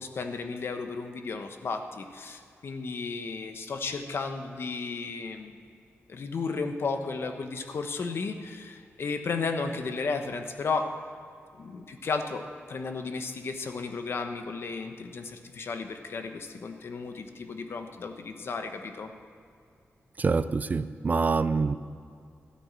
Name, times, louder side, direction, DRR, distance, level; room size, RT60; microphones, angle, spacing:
voice 1, 0.0-5.5 6.1-10.9 11.6-12.4 12.7-19.1, left 4 dB, 60° left, 6 dB, 1.1 m, -34 dB
voice 2, 20.2-21.8, right 4 dB, 40° right, 13 dB, 0.4 m, -26 dB
13.5 x 10.0 x 7.5 m, 2.3 s
wide cardioid pair, 125°, 5 cm